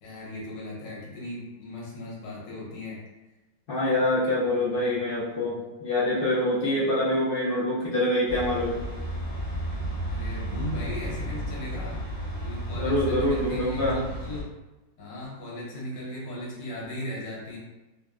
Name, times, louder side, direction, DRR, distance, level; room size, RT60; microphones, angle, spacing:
voice 1, 0.0-3.0 4.8-4.9 10.1-12.0 12.4-14.5 15.0-17.6, left 1 dB, 70° left, -5 dB, 1.5 m, -37 dB
voice 2, 3.7-8.8 12.7-14.0, left 1 dB, 55° left, -9 dB, 0.6 m, -25 dB
sound 1, 8.3-14.4, right 1 dB, 65° right, 0.3 m, -33 dB
3.4 x 2.2 x 2.3 m, 1.1 s
omnidirectional pair, 2.0 m